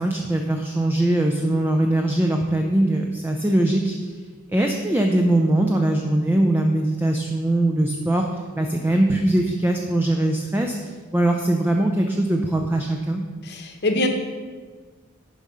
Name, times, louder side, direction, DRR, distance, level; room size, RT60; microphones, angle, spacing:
voice 1, 0.0-4.1 4.5-8.3 8.6-13.2, right 1 dB, 10° right, 2 dB, 0.4 m, -21 dB
voice 2, 13.4-14.1, left 2 dB, 55° left, 4 dB, 1.0 m, -23 dB
7.2 x 4.9 x 5.5 m, 1.5 s
head